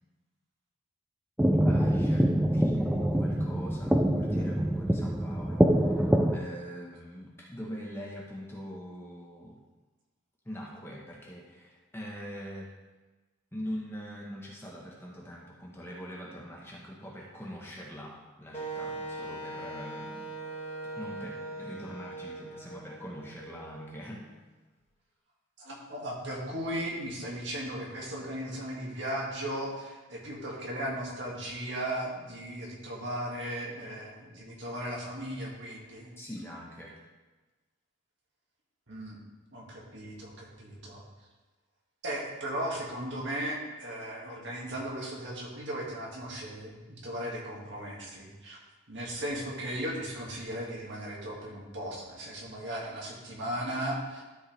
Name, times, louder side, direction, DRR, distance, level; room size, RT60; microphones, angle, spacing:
sound 1, 1.4-6.4, right 1 dB, 5° right, 0.3 m, -25 dB
voice 1, 1.6-6.0 6.3-9.6 10.4-12.7 13.5-20.4 20.8-24.2 36.2-37.0, equal, 10° left, -3 dB, 1.2 m, -43 dB
Wind instrument woodwind instrument, 18.5-24.4, right 2 dB, 30° left, 1.2 m, -41 dB
voice 2, 25.6-36.1 38.9-39.2 39.5-41.0 42.0-48.6 48.9-54.2, right 1 dB, 55° right, -3 dB, 2.1 m, -36 dB
12.5 x 5.6 x 3.4 m, 1.2 s
head